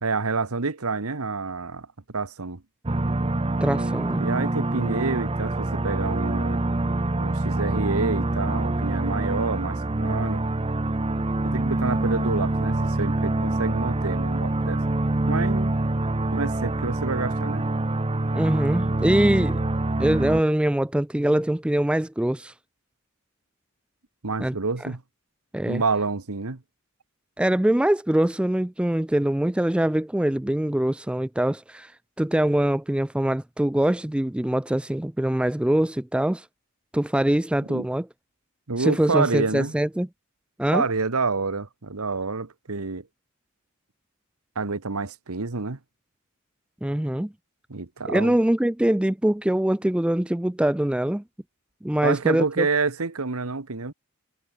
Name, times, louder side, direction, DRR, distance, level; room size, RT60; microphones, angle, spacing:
voice 1, 0.0-2.6 4.2-6.6 7.2-10.4 11.4-14.8 15.3-15.7 16.3-17.7 24.2-25.0 25.7-26.6 37.7-37.9 38.7-39.7 40.7-43.1 44.5-45.8 47.7-48.3 52.0-53.9, right 4 dB, 75° right, 1.3 m, -28 dB
sound 1, 2.9-20.4, right 2 dB, 25° right, 0.8 m, -25 dB
voice 2, 3.6-4.2 18.3-19.6 20.0-22.5 24.4-24.5 25.5-25.8 27.4-31.9 32.2-36.5 36.9-38.1 38.8-40.1 40.6-40.8 46.8-47.3 48.1-51.2 51.8-52.7, right 1 dB, 5° right, 0.3 m, -23 dB
head